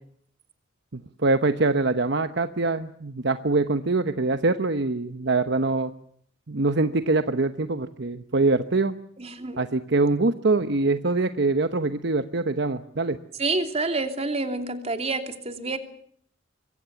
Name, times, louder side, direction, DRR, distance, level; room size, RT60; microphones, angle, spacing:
voice 1, 0.9-5.9 6.5-8.9 9.6-13.2, right 3 dB, 60° right, 10 dB, 1.0 m, -24 dB
voice 2, 9.2-9.6 13.4-15.8, right 3 dB, 35° right, 7 dB, 2.9 m, -28 dB
26.0 x 23.0 x 7.0 m, 0.64 s
head